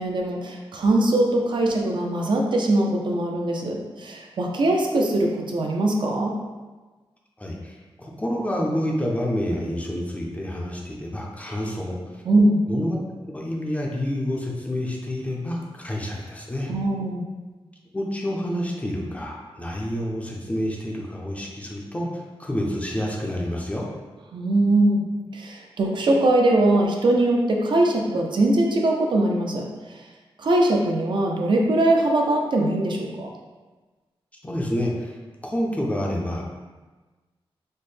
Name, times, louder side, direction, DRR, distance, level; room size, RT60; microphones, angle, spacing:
voice 1, 0.0-6.3 12.3-12.6 16.7-17.3 24.3-25.0 25.3-29.6 30.4-33.3, right 1 dB, 55° right, 0 dB, 0.4 m, -21 dB
voice 2, 7.4-12.2 12.7-13.0 13.3-16.7 17.9-23.8 34.4-35.1 35.4-36.4, equal, 15° left, -2 dB, 0.4 m, -28 dB
4.2 x 2.1 x 3.2 m, 1.3 s
wide cardioid pair, 170°, 10 cm